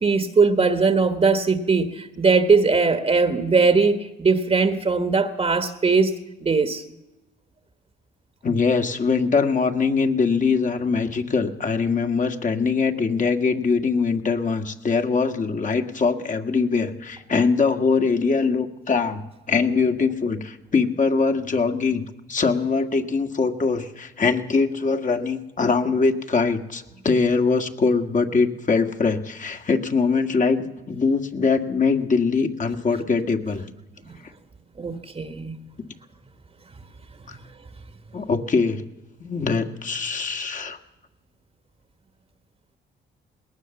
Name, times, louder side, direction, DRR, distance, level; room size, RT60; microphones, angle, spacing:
voice 1, 0.0-6.8 34.8-35.6, right 4 dB, 30° right, 9 dB, 1.4 m, -20 dB
voice 2, 8.4-22.0 22.3-33.7 37.3-37.4 38.1-38.8 39.2-40.8, left 4 dB, 40° left, 5 dB, 1.9 m, -22 dB
20.5 x 18.5 x 7.1 m, 0.97 s
cardioid pair, 90°, 20 cm